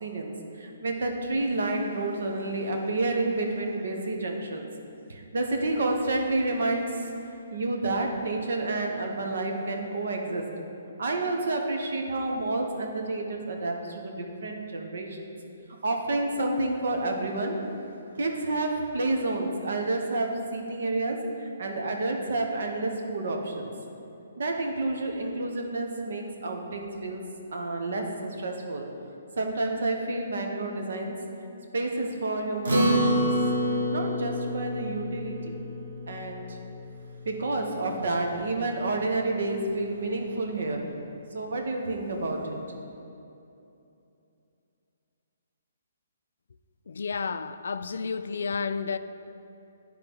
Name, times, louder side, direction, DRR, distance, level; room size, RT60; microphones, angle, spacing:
voice 1, 0.0-4.7 5.1-10.5 11.0-15.3 15.8-17.6 18.2-23.7 24.4-27.2 27.5-28.9 29.4-31.2 31.7-33.3 33.9-35.5 36.1-36.6 37.2-40.9 41.3-42.6, right 2 dB, 70° right, 2 dB, 1.0 m, -29 dB
Acoustic guitar, 32.6-37.3, equal, 90° right, 1.5 m, -27 dB
voice 2, 46.9-49.0, left 5 dB, 75° left, 12 dB, 0.3 m, -31 dB
10.5 x 3.8 x 4.6 m, 2.8 s
hypercardioid pair, 145°, 0 cm